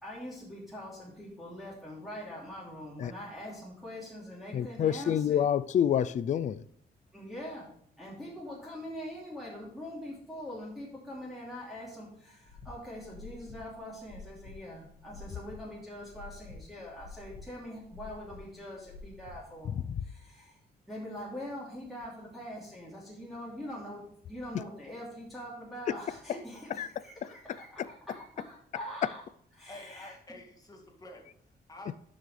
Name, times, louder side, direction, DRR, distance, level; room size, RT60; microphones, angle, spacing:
voice 1, 0.0-5.4 7.1-7.7 8.0-19.7 20.0-20.6 20.9-29.2 29.6-30.1, equal, ahead, 2.9 m, -43 dB
voice 2, 4.5-6.6 19.9-20.0 26.8-26.9, left 9 dB, 45° left, 0.4 m, -27 dB
sound 1, 12.4-19.9, left 4 dB, 80° left, 2.0 m, -50 dB
voice 3, 29.7-31.9, left 1 dB, 20° left, 2.2 m, -49 dB
12.0 x 6.4 x 3.3 m
cardioid pair, 125°, 17 cm